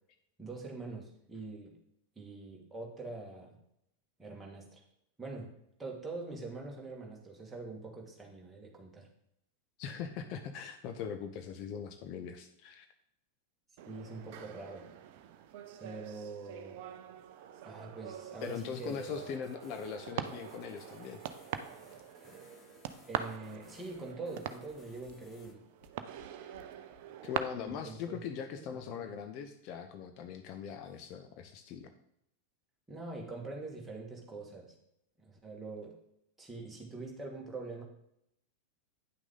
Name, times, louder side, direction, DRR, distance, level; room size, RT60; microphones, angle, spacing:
voice 1, 0.4-1.8 2.2-3.6 4.2-4.8 5.2-9.1 13.9-14.9 15.8-16.8 17.6-19.3 23.1-25.6 27.6-28.2 28.5-29.2 32.9-34.8 35.2-36.0 36.4-37.8, right 3 dB, 10° right, -2 dB, 2.1 m, -44 dB
voice 2, 9.8-12.8 18.4-21.2 27.2-31.9, left 7 dB, 40° left, 7 dB, 0.7 m, -41 dB
sound 1, 13.8-27.4, right 10 dB, 50° right, 0.6 m, -44 dB
sound 2, 18.4-25.5, left 4 dB, 25° left, 1.1 m, -61 dB
sound 3, 23.9-24.0 24.3-24.4 24.7-24.8 25.0-25.1 25.4-25.5 25.8-26.2 26.5-26.6 26.9-27.0 27.3-27.4 27.7-27.8, left 4 dB, 55° left, 2.8 m, -62 dB
9.6 x 6.0 x 3.9 m, 0.78 s
figure-of-eight pair, 90°, 0 cm